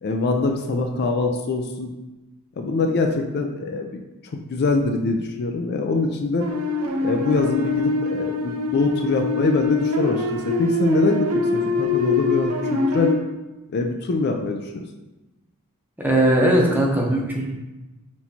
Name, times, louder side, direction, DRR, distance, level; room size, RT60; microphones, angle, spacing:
voice 1, 0.0-1.9 2.6-6.5 7.0-13.1 13.7-14.8, left 3 dB, 45° left, 4 dB, 0.4 m, -23 dB
sound 1, 6.4-13.1, left 3 dB, 75° right, 0.6 m, -24 dB
voice 2, 16.0-17.5, right 1 dB, 10° right, -2 dB, 0.7 m, -19 dB
6.2 x 2.9 x 2.7 m, 1.1 s
head